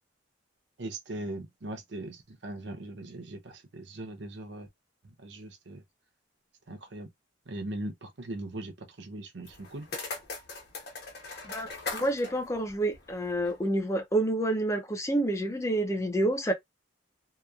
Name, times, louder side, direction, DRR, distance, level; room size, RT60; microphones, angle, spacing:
voice 1, 0.8-4.7 5.0-5.8 6.7-7.1 7.5-9.9, right 1 dB, 65° right, 0.7 m, -40 dB
sound 1, 9.5-13.6, left 3 dB, 55° left, 1.1 m, -40 dB
voice 2, 11.4-16.5, right 1 dB, 15° left, 0.5 m, -28 dB
2.9 x 2.1 x 2.4 m
head